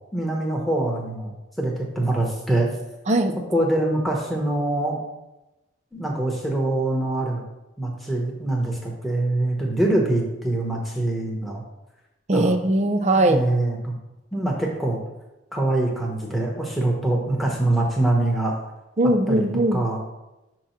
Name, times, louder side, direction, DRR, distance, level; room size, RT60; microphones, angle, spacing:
voice 1, 0.1-2.7 3.5-5.0 5.9-7.4 7.8-11.6 12.3-12.5 13.1-13.9 14.3-15.0 15.5-18.6 19.3-19.4 19.7-20.0, right 1 dB, ahead, -2 dB, 1.0 m, -24 dB
voice 2, 3.1-3.4 12.3-13.4 19.0-19.8, right 1 dB, 35° right, 6 dB, 0.5 m, -20 dB
6.0 x 3.1 x 5.7 m, 0.97 s
head